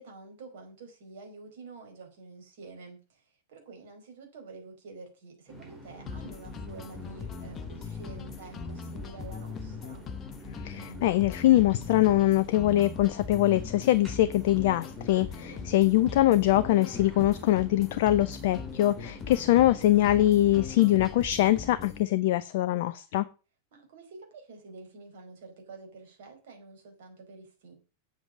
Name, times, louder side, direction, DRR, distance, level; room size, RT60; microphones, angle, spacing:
voice 1, 0.0-10.1 15.5-16.1 23.7-27.8, right 3 dB, 55° right, 4.6 m, -48 dB
sound 1, 5.5-21.2, right 1 dB, 15° right, 4.0 m, -47 dB
sound 2, 6.1-22.1, left 6 dB, 25° left, 1.2 m, -40 dB
voice 2, 10.6-23.2, left 14 dB, 50° left, 0.7 m, -23 dB
8.3 x 7.9 x 7.5 m
figure-of-eight pair, 90°, 0 cm